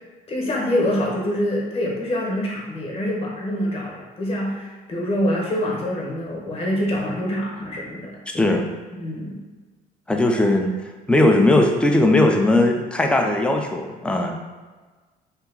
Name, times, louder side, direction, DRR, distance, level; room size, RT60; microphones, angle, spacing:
voice 1, 0.3-8.4 8.9-9.4, left 1 dB, 35° left, -2 dB, 0.9 m, -25 dB
voice 2, 8.3-8.7 10.1-10.7 11.1-14.5, left 1 dB, 5° left, 2 dB, 0.4 m, -18 dB
2.8 x 2.3 x 3.6 m, 1.3 s
cardioid pair, 110°, 17 cm